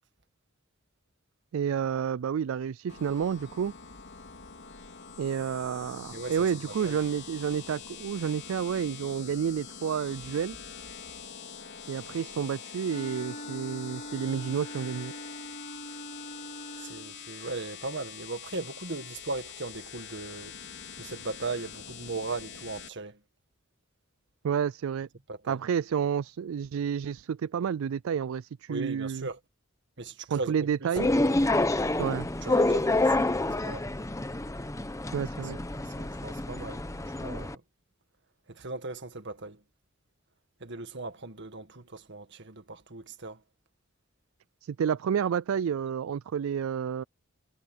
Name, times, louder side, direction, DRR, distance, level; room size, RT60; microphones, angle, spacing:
voice 1, 1.5-3.7 5.2-10.6 11.9-15.1 24.4-25.1 25.5-29.3 30.3-31.1 32.0-32.3 35.1-35.6 44.6-47.0, right 7 dB, 75° right, 0.4 m, -30 dB
sound 1, 2.9-22.9, left 7 dB, 60° left, 4.1 m, -45 dB
voice 2, 6.6-7.0 16.8-20.6 21.0-23.2 25.3-25.6 28.7-29.4 30.0-31.3 32.1-33.3 33.6-33.9 35.7-36.8 37.2-37.6 38.5-39.6 40.6-43.4, right 3 dB, 60° right, 1.8 m, -38 dB
Wind instrument woodwind instrument, 12.8-17.3, equal, 40° left, 2.6 m, -43 dB
sound 2, 31.0-37.5, left 2 dB, 15° left, 0.9 m, -28 dB
head